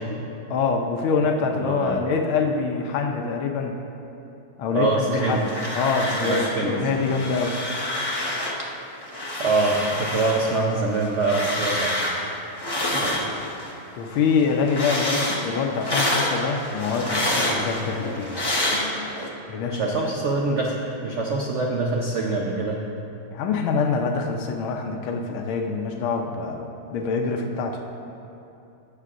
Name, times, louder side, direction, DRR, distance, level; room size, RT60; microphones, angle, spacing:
voice 1, 0.5-3.8 4.6-5.4 5.7-7.6 14.0-18.4 19.5-19.9 23.3-27.8, left 5 dB, 90° left, 3 dB, 1.5 m, -25 dB
voice 2, 1.5-2.0 4.7-5.4 6.2-7.1 9.4-12.0 12.9-13.2 19.7-20.8 21.0-22.8, right 3 dB, 80° right, -2 dB, 0.6 m, -24 dB
sound 1, 5.2-6.6 6.9-8.7 9.0-13.8 14.1-19.3, left 1 dB, 35° left, 0.3 m, -27 dB
19.5 x 6.7 x 2.5 m, 2.8 s
omnidirectional pair, 2.2 m